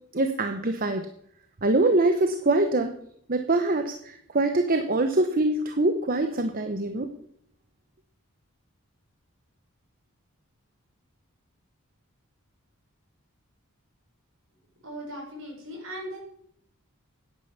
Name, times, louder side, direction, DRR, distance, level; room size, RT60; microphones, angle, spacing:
voice 1, 0.1-1.0 1.6-2.9 3.3-7.1, right 2 dB, 40° right, 6 dB, 0.9 m, -24 dB
voice 2, 14.8-16.2, equal, 60° right, -1 dB, 6.2 m, -38 dB
10.0 x 10.0 x 6.7 m, 0.68 s
head